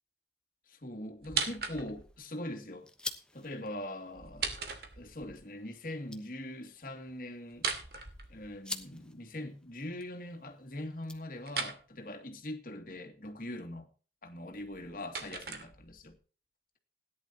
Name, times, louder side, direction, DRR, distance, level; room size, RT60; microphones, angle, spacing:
voice 1, 0.7-2.9 3.3-4.6 5.0-7.7 8.3-13.9 14.2-16.1, left 1 dB, 50° left, 2.5 m, -42 dB
sound 1, 1.2-2.2 4.2-5.4 7.5-8.8 11.5-11.8 14.5-16.1, right 5 dB, 60° right, 2.5 m, -38 dB
sound 2, 1.4-11.7, left 2 dB, 5° left, 1.1 m, -49 dB
17.5 x 11.0 x 2.9 m
head